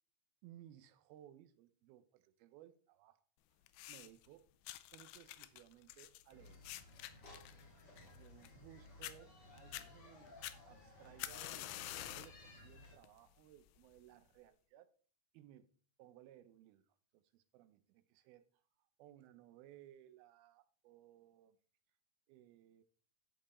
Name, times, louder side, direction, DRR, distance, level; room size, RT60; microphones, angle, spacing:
voice 1, 0.4-3.2 3.9-4.5 4.9-6.6 8.1-10.4 10.7-11.8 12.0-14.9 15.3-15.7 16.0-16.8 17.1-21.6 22.3-22.8, right 12 dB, 85° right, 2.6 m, -61 dB
sound 1, 3.7-4.3 4.7-8.7 9.0-9.2 9.6-9.9 10.4-12.4 12.8-13.2 14.0-14.1, left 15 dB, 85° left, 2.5 m, -48 dB
sound 2, 6.3-13.0, left 2 dB, 35° left, 2.0 m, -58 dB
13.5 x 4.6 x 4.2 m
omnidirectional pair, 4.4 m